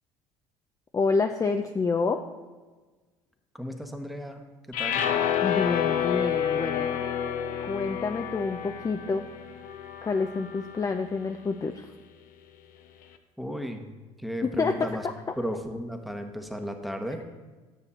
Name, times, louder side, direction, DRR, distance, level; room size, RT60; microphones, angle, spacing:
voice 1, 0.9-2.2 5.4-6.9 7.6-9.3 10.0-11.9 14.4-15.1, left 4 dB, 20° left, 6 dB, 0.5 m, -28 dB
voice 2, 3.6-5.0 13.4-13.9 14.2-15.0 15.4-17.2, equal, ahead, 5 dB, 1.1 m, -34 dB
sound 1, 4.7-11.0, left 9 dB, 60° left, 0.7 m, -29 dB
10.0 x 6.4 x 4.2 m, 1.3 s
hypercardioid pair, 70°, 16 cm